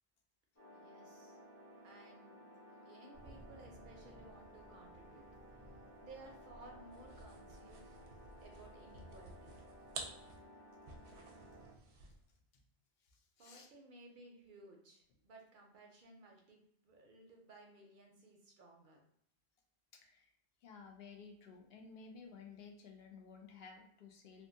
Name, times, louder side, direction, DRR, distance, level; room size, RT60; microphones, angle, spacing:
sound 1, 0.6-11.7, equal, 20° left, 0.5 m, -58 dB
voice 1, 0.7-1.4 1.8-2.4 2.8-5.2 5.6-5.7 6.0-8.0 8.4-9.6 13.4-19.0, right 2 dB, 60° right, 1 dB, 0.6 m, -58 dB
sound 2, 3.1-10.3, right 1 dB, 35° left, 1.2 m, -61 dB
sound 3, 6.9-12.3, right 3 dB, 85° right, 0.9 m, -52 dB
voice 2, 13.0-13.7 19.9-20.3 20.6-24.5, left 5 dB, 75° left, 3 dB, 0.8 m, -55 dB
2.9 x 2.1 x 2.5 m, 0.71 s
omnidirectional pair, 1.1 m